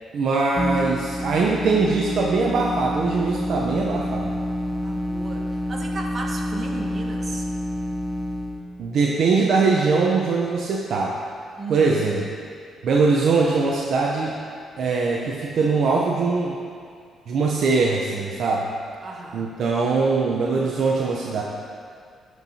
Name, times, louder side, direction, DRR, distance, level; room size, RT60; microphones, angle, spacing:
voice 1, 0.1-4.3 8.8-11.2 11.7-12.2 12.8-14.3 14.8-16.6 17.3-18.7 19.3-21.4, right 4 dB, 65° right, -2 dB, 0.6 m, -21 dB
sound 1, 0.6-8.6, left 1 dB, 5° right, 0.7 m, -28 dB
voice 2, 4.7-7.5 11.5-12.0 19.0-19.5, right 3 dB, 40° right, -1 dB, 1.2 m, -35 dB
13.0 x 4.6 x 2.7 m, 2.2 s
cardioid pair, 90°, 0 cm